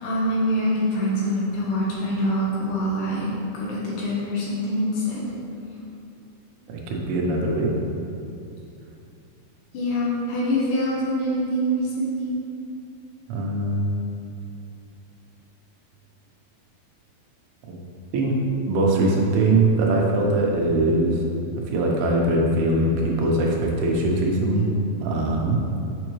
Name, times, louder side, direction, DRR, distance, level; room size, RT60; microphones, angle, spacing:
voice 1, 0.0-5.2 9.7-12.3, equal, 70° left, -6 dB, 2.5 m, -25 dB
voice 2, 6.7-7.7 13.3-14.0 17.7-17.8 18.1-18.4 18.7-21.2 21.7-24.7 25.0-25.6, right 2 dB, 85° right, -2 dB, 2.9 m, -21 dB
6.9 x 6.4 x 3.1 m, 2.5 s
omnidirectional pair, 4.4 m